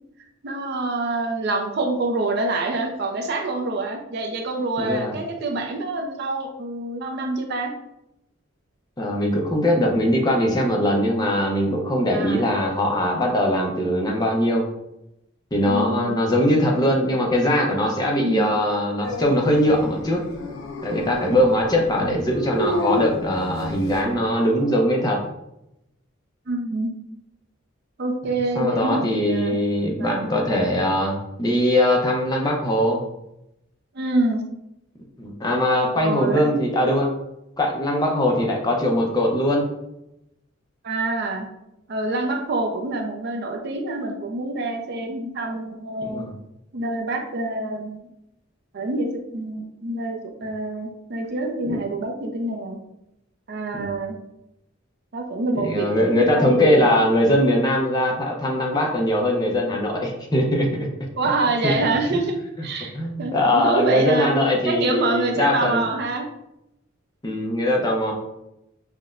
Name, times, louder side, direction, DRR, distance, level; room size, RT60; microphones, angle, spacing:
voice 1, 0.4-7.7 12.1-12.5 15.6-16.2 18.2-18.5 26.5-26.9 28.0-29.6 30.0-30.3 33.9-34.4 36.0-36.4 40.8-41.5 41.9-46.2 46.7-48.0 48.7-52.8 53.5-54.2 55.1-57.0 61.2-64.3 64.6-66.2, right 2 dB, 50° right, 3 dB, 0.5 m, -26 dB
voice 2, 4.8-5.1 9.0-14.7 15.5-20.2 20.8-25.2 28.5-33.0 35.2-37.1 37.6-39.7 46.0-46.3 51.7-51.8 53.7-53.9 55.5-60.7 61.6-61.7 62.1-62.2 62.9-65.9 67.2-68.1, left 1 dB, 20° left, 0 dB, 0.6 m, -21 dB
Dog, 19.0-24.1, left 1 dB, 75° left, 0.6 m, -31 dB
5.7 x 2.1 x 2.4 m, 0.84 s
head